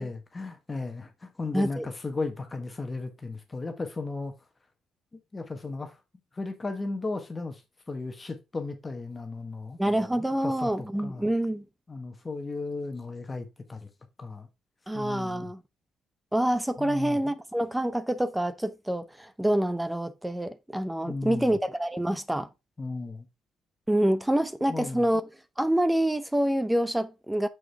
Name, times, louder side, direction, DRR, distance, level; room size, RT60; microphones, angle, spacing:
voice 1, 0.0-4.3 5.1-6.0 6.3-7.6 7.9-9.8 10.4-11.3 11.9-13.9 14.2-14.5 14.9-15.5 16.8-17.2 21.0-21.6 22.8-23.2 24.7-25.1, left 3 dB, 25° left, 1.3 m, -35 dB
voice 2, 1.5-1.9 9.8-11.6 14.9-15.6 16.3-22.5 23.9-25.2 25.6-27.5, right 1 dB, 5° right, 0.6 m, -27 dB
6.3 x 5.0 x 3.5 m
cardioid pair, 90°, 0 cm